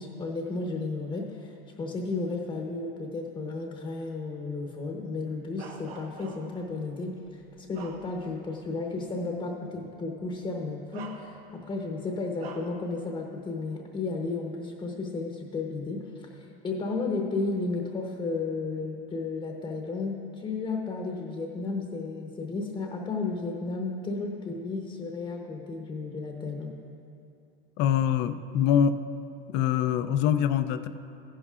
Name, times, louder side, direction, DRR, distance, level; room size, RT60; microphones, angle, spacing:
voice 1, 0.0-26.8, left 3 dB, 15° left, 1 dB, 0.8 m, -33 dB
Bark, 5.6-6.7 7.2-8.5 8.9-9.1 10.2-10.4 10.9-11.7 12.4-12.8, right 6 dB, 80° right, 1.3 m, -45 dB
voice 2, 27.8-29.0 29.5-30.9, left 9 dB, 35° left, 11 dB, 0.4 m, -24 dB
14.5 x 11.5 x 2.4 m, 2.7 s
supercardioid pair, 135°, 30 cm